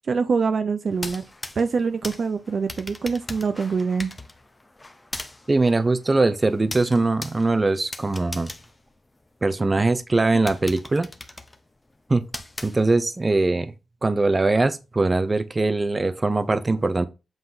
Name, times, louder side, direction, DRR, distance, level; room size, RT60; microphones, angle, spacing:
voice 1, 0.1-1.3 1.6-4.1, right 5 dB, 55° right, 0.6 m, -24 dB
sound 1, 0.9-9.6 10.1-10.2 10.5-13.2, left 2 dB, 15° left, 0.9 m, -39 dB
voice 2, 5.5-8.5 9.4-11.1 12.1-12.2 12.6-13.7 14.0-17.1, right 2 dB, 25° right, 0.8 m, -21 dB
8.0 x 3.1 x 5.6 m
cardioid pair, 95°, 0 cm